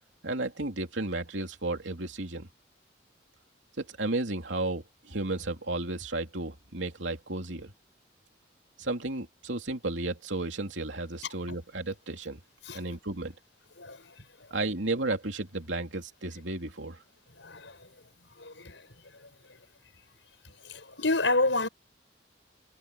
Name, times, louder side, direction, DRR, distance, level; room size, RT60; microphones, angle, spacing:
voice 1, 0.2-2.5 3.8-7.7 8.8-12.4 12.7-13.3 14.5-17.0, right 2 dB, 90° right, 2.9 m, -33 dB
voice 2, 17.4-17.8 18.4-18.8 20.6-21.7, left 2 dB, 85° left, 6.2 m, -29 dB
head